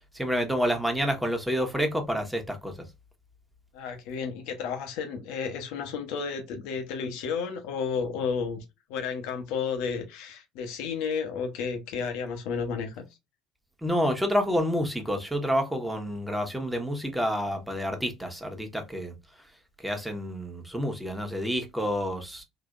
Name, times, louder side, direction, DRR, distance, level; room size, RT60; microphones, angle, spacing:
voice 1, 0.1-2.7 13.8-19.1 19.8-22.4, equal, 5° right, 1.1 m, -28 dB
voice 2, 3.7-13.1, left 6 dB, 65° left, 0.8 m, -32 dB
3.9 x 2.7 x 2.4 m
figure-of-eight pair, 60°, 0 cm